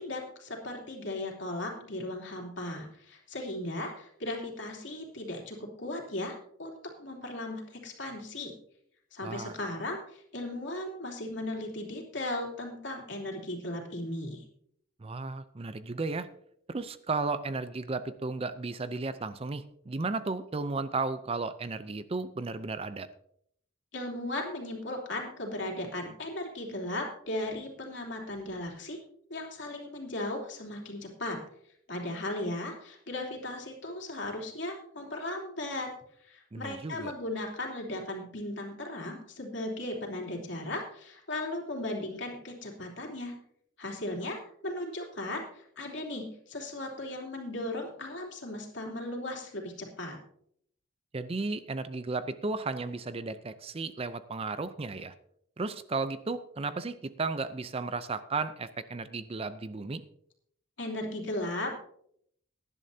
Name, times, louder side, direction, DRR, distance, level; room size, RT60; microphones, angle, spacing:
voice 1, 0.0-8.5 9.1-14.4 23.9-29.0 29.3-31.4 31.9-35.9 36.2-43.3 43.8-50.2 60.8-61.7, left 1 dB, 60° left, 0 dB, 3.1 m, -37 dB
voice 2, 9.2-9.6 15.0-16.3 16.7-23.1 36.5-37.1 51.1-55.1 55.6-60.0, right 3 dB, 30° right, 13 dB, 0.5 m, -34 dB
18.5 x 11.0 x 2.7 m, 0.69 s
head